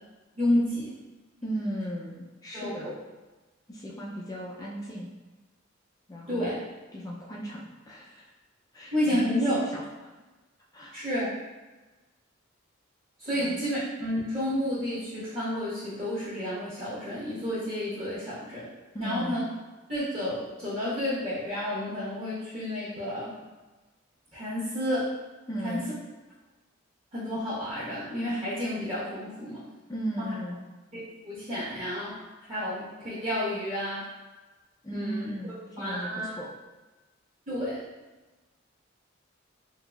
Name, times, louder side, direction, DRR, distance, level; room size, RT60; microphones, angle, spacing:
voice 1, 0.4-0.9 2.5-2.7 6.3-6.6 8.9-9.6 10.9-11.3 13.2-18.7 19.0-19.4 19.9-23.3 24.3-25.1 25.6-25.8 27.1-29.6 30.2-30.3 30.9-32.2 32.5-34.0 34.9-35.3 35.8-36.3 37.5-37.8, left 1 dB, 30° right, -12 dB, 1.0 m, -30 dB
voice 2, 1.4-2.9 3.7-5.1 6.1-6.5 6.9-8.3 8.7-10.1 10.7-11.0 13.3-13.6 18.9-19.4 25.5-25.9 29.9-30.6 34.8-36.5, right 1 dB, 20° left, -4 dB, 0.3 m, -36 dB
3.8 x 2.7 x 2.3 m, 1.2 s
head